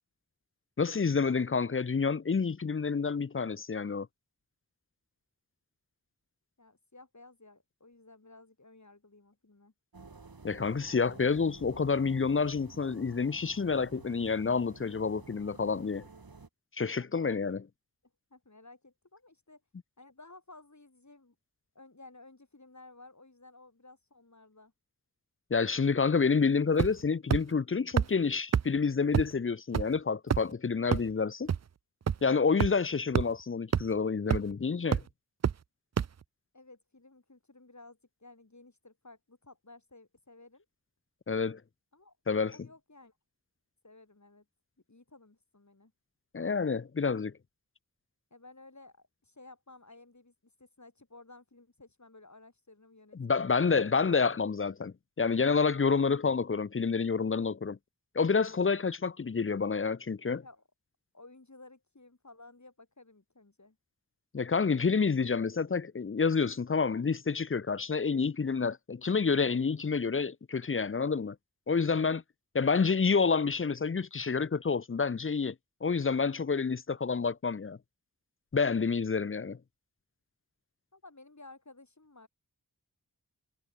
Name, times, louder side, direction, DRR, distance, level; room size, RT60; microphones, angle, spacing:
voice 1, 0.8-4.1 10.4-16.1 16.8-17.6 25.5-31.5 32.2-35.0 41.3-41.6 42.3-42.5 46.3-47.3 53.1-57.8 58.2-60.4 64.3-71.4 71.7-72.2 72.5-75.5 75.8-77.8 78.5-79.6, left 5 dB, 35° left, 0.5 m, -28 dB
voice 2, 6.6-9.7 17.0-17.5 18.3-19.6 20.0-21.3 21.7-24.7 36.5-40.6 41.9-42.2 42.4-43.1 43.8-44.4 44.9-45.9 48.3-53.8 60.4-60.6 61.1-63.8 80.9-82.3, left 2 dB, 50° left, 4.8 m, -55 dB
sound 1, 9.9-16.5, right 4 dB, 80° right, 2.8 m, -51 dB
Beating Pillow Backed by Wooden Panel with Closed Fist, 26.8-27.0 27.3-27.4 28.0-28.1 28.5-28.6 29.1-29.2 29.7-29.8 30.3-30.5 30.9-31.0 31.5-31.6 32.1-32.2 32.6-32.7 33.1-33.3 33.7-33.8 34.3-34.5 34.9-35.0 35.4-35.5 36.0-36.1, right 7 dB, 50° right, 0.4 m, -25 dB
wide cardioid pair, 55°, 35 cm